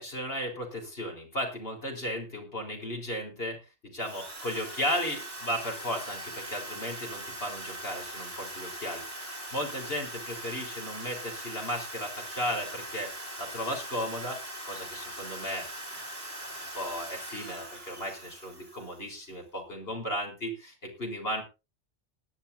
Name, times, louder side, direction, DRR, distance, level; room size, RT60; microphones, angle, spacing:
voice 1, 0.0-14.4 14.6-15.7 16.7-21.4, equal, 55° left, 1 dB, 4.3 m, -35 dB
Drill, 4.0-19.2, right 1 dB, 55° right, 3.7 m, -41 dB
20.0 x 10.5 x 2.7 m, 0.28 s
omnidirectional pair, 1.2 m